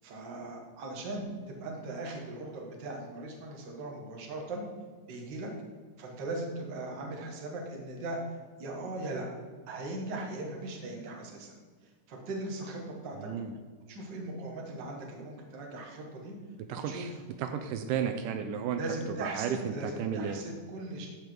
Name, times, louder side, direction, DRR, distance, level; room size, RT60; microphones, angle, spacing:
voice 1, 0.0-4.6 5.1-5.5 6.0-8.2 8.6-9.3 9.7-11.6 11.8-13.3 13.9-16.4 16.8-17.2 18.7-21.1, right 2 dB, 45° right, 0 dB, 1.7 m, -39 dB
voice 2, 13.2-13.5 16.7-17.1 17.4-18.8 19.2-20.4, right 7 dB, 80° right, 7 dB, 2.2 m, -33 dB
14.5 x 5.0 x 4.6 m, 1.5 s
omnidirectional pair, 3.9 m